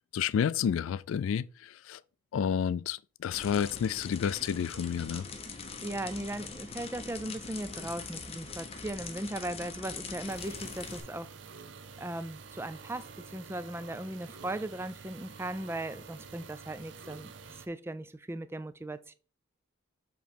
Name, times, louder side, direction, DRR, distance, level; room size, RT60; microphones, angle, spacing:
voice 1, 0.1-2.0 2.3-5.3, left 8 dB, 85° left, 0.3 m, -30 dB
sound 1, 3.3-11.0, left 4 dB, 30° left, 0.9 m, -42 dB
voice 2, 5.8-11.4 12.0-19.1, right 1 dB, 10° right, 0.4 m, -38 dB
sound 2, 10.3-17.7, right 5 dB, 60° right, 0.6 m, -49 dB
7.3 x 3.1 x 5.0 m
head